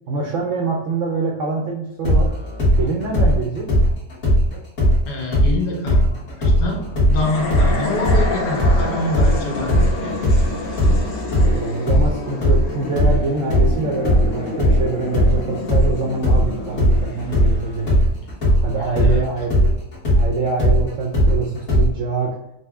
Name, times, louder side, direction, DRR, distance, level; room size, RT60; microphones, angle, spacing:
voice 1, 0.1-2.3 2.8-3.7 11.4-18.0 18.6-19.6 20.2-22.4, right 3 dB, 75° right, 0 dB, 0.7 m, -25 dB
sound 1, 2.0-5.5 5.9-13.7 14.0-21.9, equal, 45° left, 1.4 m, -17 dB
voice 2, 5.1-10.2 18.7-19.3, left 2 dB, 75° left, 0 dB, 1.3 m, -26 dB
sound 2, 7.1-18.5, left 2 dB, 60° left, 0.8 m, -29 dB
4.0 x 2.1 x 3.4 m, 0.87 s
omnidirectional pair, 1.8 m